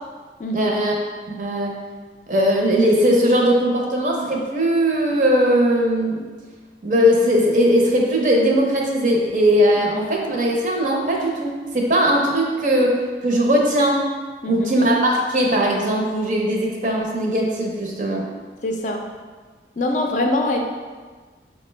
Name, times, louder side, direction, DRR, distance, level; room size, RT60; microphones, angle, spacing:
voice 1, 0.5-1.0 1.3-1.7 2.3-6.2 6.8-14.0 14.5-18.3, equal, 45° right, -1 dB, 0.6 m, -19 dB
voice 2, 18.6-19.0 19.8-20.6, left 1 dB, 45° left, 2 dB, 0.4 m, -23 dB
5.7 x 2.2 x 3.2 m, 1.4 s
head